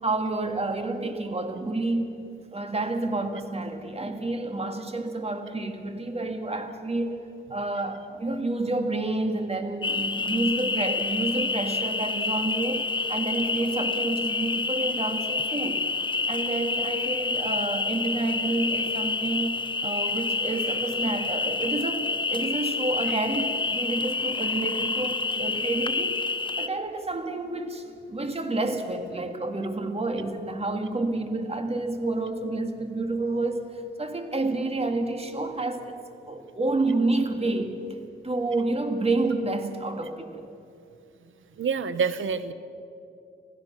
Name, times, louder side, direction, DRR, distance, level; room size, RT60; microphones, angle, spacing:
voice 1, 0.0-2.1 2.5-7.2 7.5-15.9 16.3-19.6 19.8-26.2 26.6-33.6 34.0-36.0 36.3-37.7 38.2-40.4, right 2 dB, 30° right, 6 dB, 2.2 m, -29 dB
sound 1, 9.8-26.7, left 3 dB, 25° left, 0.7 m, -28 dB
voice 2, 41.6-42.5, right 6 dB, 75° right, 12 dB, 1.1 m, -26 dB
27.0 x 16.5 x 6.1 m, 2.6 s
cardioid pair, 75°, 21 cm